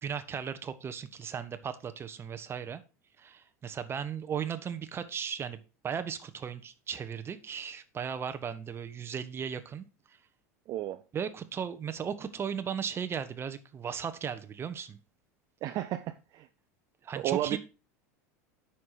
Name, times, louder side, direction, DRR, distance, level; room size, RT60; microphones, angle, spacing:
voice 1, 0.0-2.8 3.2-5.6 5.8-9.8 11.1-15.0 17.0-17.6, right 7 dB, 30° right, 1.2 m, -36 dB
voice 2, 10.7-11.0 15.6-16.5 17.2-17.6, right 13 dB, 50° right, 0.7 m, -32 dB
9.4 x 6.0 x 4.9 m
hypercardioid pair, 95°, 9 cm